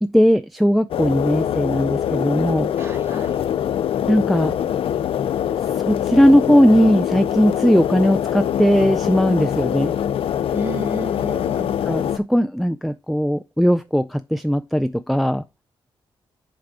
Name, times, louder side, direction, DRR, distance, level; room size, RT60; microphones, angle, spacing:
voice 1, 0.0-2.7 4.1-4.6 5.8-9.9 11.3-11.4 11.9-15.4, equal, ahead, 0.4 m, -18 dB
sound 1, 0.9-12.2, left 10 dB, 80° left, 0.4 m, -23 dB
voice 2, 2.8-3.4 10.5-11.7, equal, 30° right, 1.8 m, -32 dB
7.4 x 3.7 x 4.7 m
cardioid pair, 95°, 9 cm